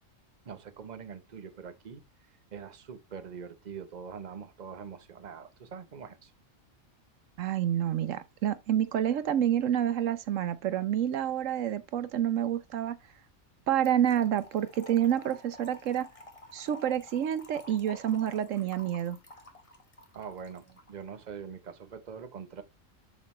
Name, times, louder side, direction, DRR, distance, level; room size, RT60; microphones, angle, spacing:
voice 1, 0.4-2.0 2.5-6.3 20.1-22.6, right 6 dB, 40° right, 0.9 m, -43 dB
voice 2, 7.4-13.0 13.7-16.1 16.5-19.2, right 10 dB, 75° right, 1.1 m, -28 dB
Trickle dribble / Fill (with liquid), 13.8-20.9, left 1 dB, 25° left, 1.5 m, -52 dB
7.3 x 6.3 x 3.1 m
omnidirectional pair, 1.4 m